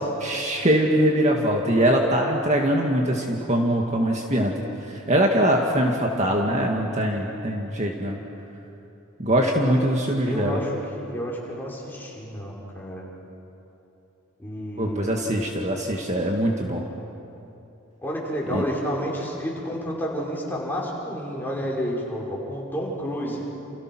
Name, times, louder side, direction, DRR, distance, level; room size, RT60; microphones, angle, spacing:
voice 1, 0.2-4.5 5.1-8.2 9.2-10.6 14.8-16.8 18.5-18.6, right 1 dB, 35° right, 0 dB, 1.9 m, -22 dB
voice 2, 9.7-10.0 10.2-13.0 14.4-15.3 18.0-23.4, equal, 10° left, -4 dB, 5.3 m, -30 dB
30.0 x 29.0 x 6.2 m, 2.9 s
head